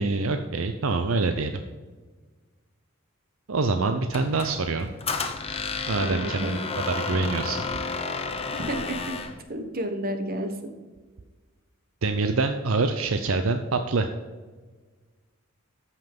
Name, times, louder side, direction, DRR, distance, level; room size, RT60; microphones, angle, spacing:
voice 1, 0.0-1.6 3.5-4.9 5.9-6.6 6.9-7.6 12.0-14.1, right 3 dB, 70° right, 7 dB, 0.7 m, -25 dB
Squeak, 4.1-9.4, left 4 dB, 30° left, 0.9 m, -32 dB
voice 2, 6.0-6.6 8.5-9.0 9.5-10.7, right 1 dB, 45° right, 6 dB, 1.4 m, -31 dB
13.5 x 5.6 x 5.3 m, 1.4 s
head